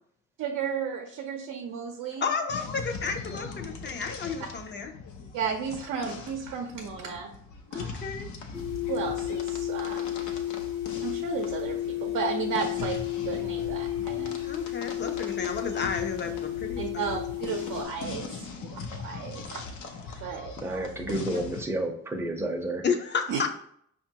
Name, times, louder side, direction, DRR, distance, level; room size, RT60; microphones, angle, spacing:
voice 1, 0.4-2.3 5.3-7.3 7.7-8.0 8.9-10.1 11.0-13.0 13.2-14.4 16.8-19.6 20.2-20.9 23.3-23.4, right 6 dB, 75° right, 2 dB, 0.6 m, -34 dB
voice 2, 2.2-4.9 7.7-8.3 14.4-17.0 22.8-23.5, left 5 dB, 35° left, 5 dB, 0.5 m, -32 dB
sound 1, 2.5-21.6, left 4 dB, 75° left, 0.6 m, -41 dB
sound 2, 8.5-17.8, left 14 dB, 60° left, 1.3 m, -32 dB
voice 3, 20.6-22.8, right 1 dB, 10° right, 3 dB, 0.6 m, -31 dB
5.1 x 2.4 x 2.8 m, 0.67 s
cardioid pair, 90°, 30 cm